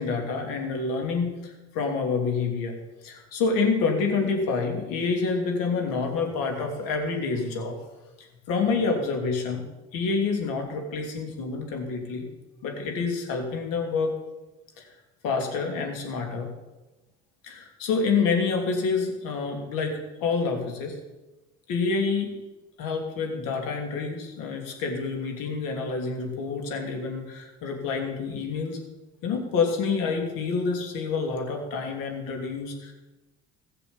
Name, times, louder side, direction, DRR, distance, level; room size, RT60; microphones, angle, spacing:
voice 1, 0.0-2.8 3.0-7.7 8.2-9.6 9.9-12.3 12.6-14.1 14.8-14.9 15.2-16.5 17.4-21.0 21.7-22.3 22.8-28.8 29.2-32.9, left 4 dB, 70° left, 2 dB, 3.0 m, -28 dB
16.0 x 6.9 x 7.2 m, 1.1 s
hypercardioid pair, 65°, 35 cm